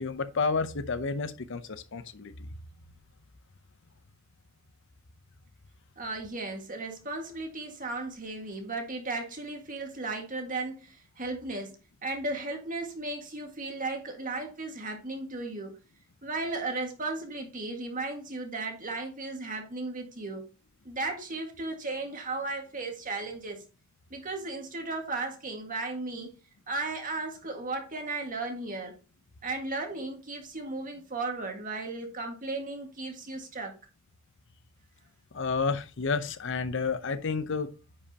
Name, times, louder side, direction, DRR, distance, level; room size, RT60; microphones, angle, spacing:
voice 1, 0.0-2.5 35.3-37.8, left 4 dB, 65° left, 0.7 m, -30 dB
voice 2, 6.0-11.8 12.0-15.8 16.2-20.5 20.9-23.6 24.1-26.3 26.7-28.9 29.4-33.7, right 3 dB, 40° right, 1.8 m, -35 dB
9.9 x 5.2 x 2.8 m
head